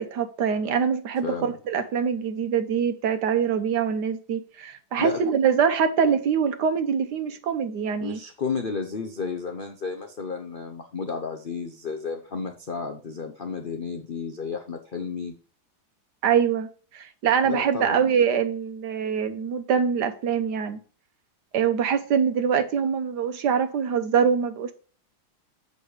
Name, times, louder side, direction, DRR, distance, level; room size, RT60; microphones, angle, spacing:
voice 1, 0.0-8.2 16.2-16.7 16.9-20.8 21.5-24.7, right 7 dB, 65° right, 1.3 m, -24 dB
voice 2, 1.2-1.6 5.0-5.2 8.0-15.3 17.4-18.0, left 5 dB, 65° left, 0.5 m, -32 dB
8.1 x 5.3 x 4.8 m
omnidirectional pair, 2.1 m